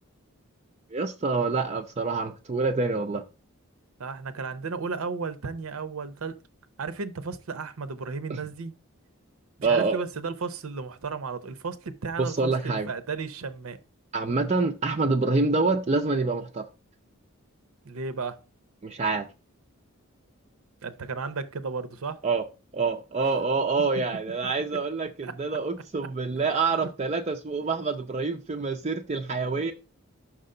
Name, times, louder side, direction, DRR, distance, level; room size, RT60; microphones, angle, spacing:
voice 1, 0.9-3.2 8.3-8.4 9.6-10.0 12.2-12.9 14.1-16.7 18.8-19.3 22.2-22.5 22.7-29.7, right 4 dB, 30° right, 0.4 m, -26 dB
voice 2, 4.0-6.4 6.8-8.7 9.6-13.8 17.8-18.4 20.8-22.2 25.2-25.3 26.8-26.9, right 4 dB, 80° right, 0.7 m, -34 dB
6.0 x 3.8 x 5.4 m
head